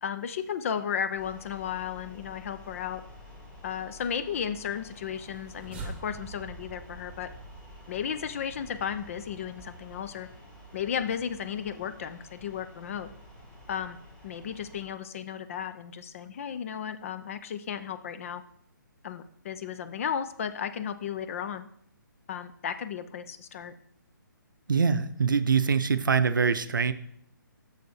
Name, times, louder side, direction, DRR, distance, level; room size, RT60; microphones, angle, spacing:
voice 1, 0.0-3.0 3.6-7.3 7.9-10.3 10.7-13.1 13.7-14.0 14.2-18.4 19.0-21.7 22.3-23.7, left 8 dB, 40° left, 12 dB, 0.6 m, -34 dB
sound 1, 1.2-14.9, left 1 dB, 10° left, 1.8 m, -50 dB
sound 2, 5.1-10.4, right 3 dB, 10° right, 1.2 m, -46 dB
voice 2, 24.7-26.9, right 5 dB, 70° right, 12 dB, 0.6 m, -24 dB
6.8 x 6.5 x 4.7 m, 0.71 s
figure-of-eight pair, 135°, 11 cm